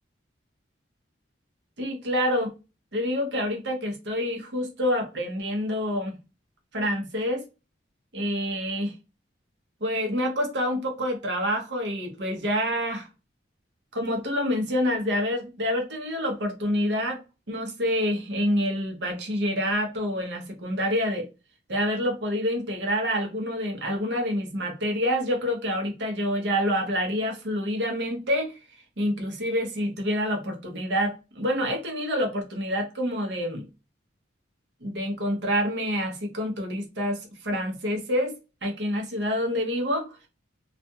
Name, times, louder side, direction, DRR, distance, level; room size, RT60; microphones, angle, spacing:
voice 1, 1.8-2.5 2.9-6.2 6.7-7.4 8.1-8.9 9.8-13.1 13.9-17.2 17.5-21.3 21.7-28.6 29.0-33.7 34.8-38.3 38.6-40.1, equal, 60° right, 0.8 m, -27 dB
2.4 x 2.2 x 2.8 m
head